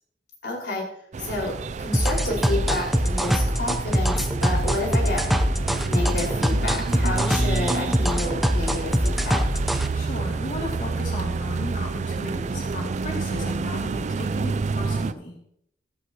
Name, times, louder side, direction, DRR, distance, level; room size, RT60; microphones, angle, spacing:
voice 1, 0.4-0.8 1.2-5.2 5.8-9.4, left 2 dB, 65° left, -2 dB, 5.1 m, -30 dB
sound 1, 1.1-15.1, right 4 dB, 40° right, 0.4 m, -29 dB
sound 2, 1.9-9.9, equal, ahead, 0.7 m, -23 dB
sound 3, 2.1-9.8, equal, 70° right, 3.1 m, -39 dB
voice 2, 9.9-15.4, left 1 dB, 45° left, -2 dB, 2.7 m, -35 dB
17.0 x 11.5 x 3.0 m, 0.71 s
head